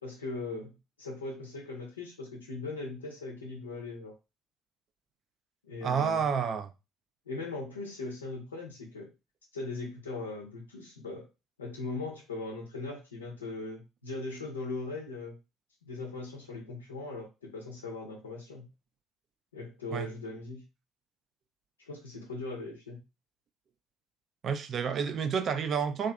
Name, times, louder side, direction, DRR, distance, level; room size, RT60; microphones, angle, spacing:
voice 1, 0.0-4.1 5.6-6.2 7.3-9.1 9.5-11.3 11.6-15.3 15.8-18.7 19.5-20.6 21.8-23.0, left 3 dB, 85° left, 0.7 m, -39 dB
voice 2, 5.8-6.7 19.9-20.1 24.4-26.1, right 6 dB, 45° right, 0.3 m, -29 dB
2.6 x 2.4 x 2.2 m
figure-of-eight pair, 55°, 0 cm